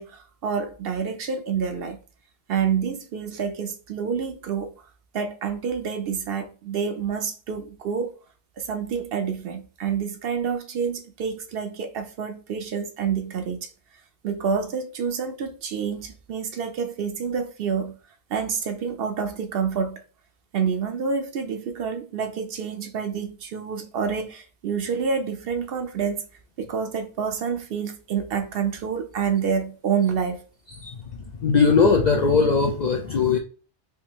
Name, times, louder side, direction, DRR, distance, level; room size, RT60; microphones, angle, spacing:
voice 1, 0.0-2.0 2.5-4.7 5.1-8.1 8.6-13.7 14.2-18.0 18.3-20.0 20.5-26.3 26.6-30.4, right 6 dB, 65° right, 0.7 m, -28 dB
voice 2, 31.4-33.4, left 5 dB, 60° left, 0.4 m, -19 dB
3.4 x 2.7 x 2.9 m
omnidirectional pair, 1.1 m